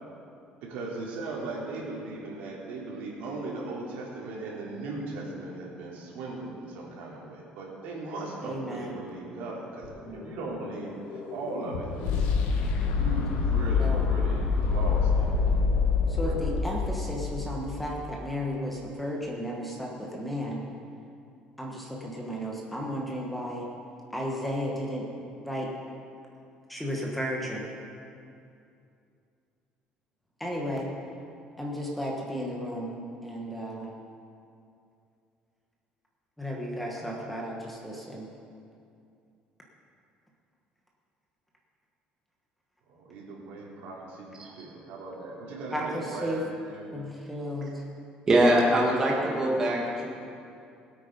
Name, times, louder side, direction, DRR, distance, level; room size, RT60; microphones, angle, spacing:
voice 1, 0.6-11.9 12.2-12.3 12.9-15.3 16.2-16.4 42.9-46.9, right 3 dB, 75° right, -4 dB, 3.3 m, -38 dB
voice 2, 8.4-9.0 10.0-10.4 13.8-14.1 16.1-20.6 21.6-23.7 24.1-25.1 25.4-25.7 26.7-27.7 30.4-30.9 31.6-32.9 33.2-33.9 36.4-38.3 45.7-46.4 46.9-47.8, equal, 5° left, -2 dB, 1.3 m, -34 dB
sound 1, 9.8-17.9, left 5 dB, 85° left, 1.6 m, -27 dB
voice 3, 48.3-50.1, right 1 dB, 20° right, -3 dB, 1.8 m, -23 dB
20.0 x 8.6 x 5.3 m, 2.5 s
cardioid pair, 180°, 3 cm